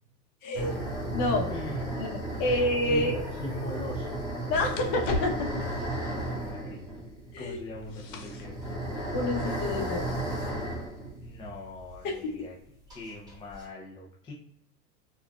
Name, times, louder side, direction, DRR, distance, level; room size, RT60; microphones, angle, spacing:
voice 1, 0.4-0.7 1.1-1.5 2.0-3.1 4.5-5.6 7.3-7.6 9.1-10.1 12.0-12.5, left 2 dB, 40° left, 1 dB, 1.0 m, -28 dB
sound 1, 0.5-12.0 12.2-12.3 12.9-13.6, right 1 dB, 10° right, 1.5 m, -34 dB
voice 2, 1.5-2.1 2.4-2.6 2.9-4.2 6.1-7.0 7.4-8.6 11.2-12.5 12.9-14.3, left 2 dB, 10° left, -3 dB, 0.4 m, -41 dB
sound 2, 3.0-10.1, left 1 dB, 80° left, 1.0 m, -42 dB
4.3 x 2.4 x 2.3 m, 0.71 s
hypercardioid pair, 110°, 48 cm